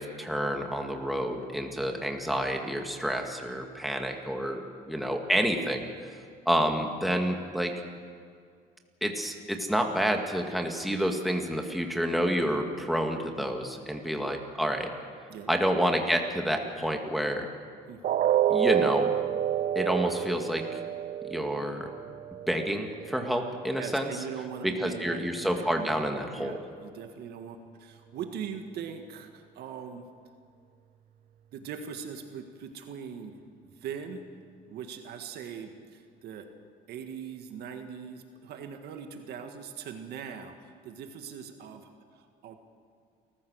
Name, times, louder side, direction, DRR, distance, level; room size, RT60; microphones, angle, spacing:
voice 1, 0.0-6.2 6.5-7.7 9.0-14.9 15.5-17.5 18.5-19.1 19.8-20.8 21.3-21.9 22.5-24.1 24.6-26.6, equal, ahead, 3 dB, 2.2 m, -29 dB
sound 1, 18.0-24.0 24.4-24.6 25.1-25.2, right 10 dB, 55° right, 0.5 m, -29 dB
voice 2, 23.7-25.5 25.7-25.9 26.4-30.0 31.5-33.4 33.8-34.2 34.7-36.5 36.9-42.6, right 7 dB, 70° right, 6 dB, 1.8 m, -41 dB
28.5 x 15.0 x 6.5 m, 2.1 s
cardioid pair, 110°, 17 cm